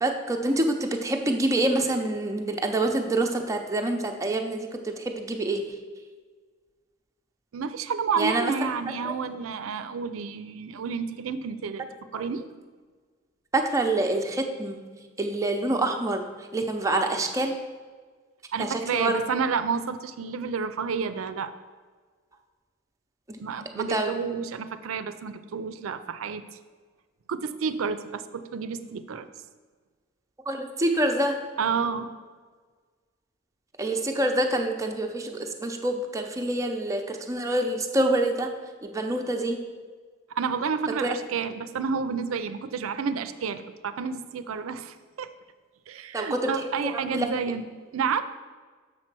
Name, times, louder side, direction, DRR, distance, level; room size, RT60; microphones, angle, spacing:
voice 1, 0.0-5.7 8.2-8.5 9.0-9.2 13.5-14.8 15.2-17.6 18.6-19.2 23.3-23.4 23.7-24.1 30.5-31.4 33.8-38.5 38.8-39.6 41.0-41.2 46.1-46.5 46.8-47.3, right 1 dB, 15° right, 3 dB, 0.6 m, -26 dB
voice 2, 7.5-11.9 12.1-12.5 18.5-21.5 23.4-26.6 27.3-29.3 31.6-32.1 40.3-45.3 45.9-47.7 47.9-48.2, right 6 dB, 85° right, 11 dB, 0.4 m, -30 dB
6.5 x 4.3 x 6.0 m, 1.5 s
head